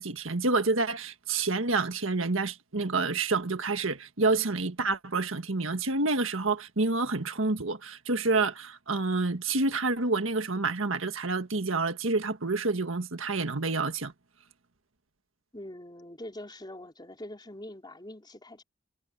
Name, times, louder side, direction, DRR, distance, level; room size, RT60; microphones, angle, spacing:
voice 1, 0.0-14.1, right 3 dB, 75° right, 1.7 m, -28 dB
voice 2, 15.5-18.6, left 1 dB, 20° left, 4.3 m, -43 dB
head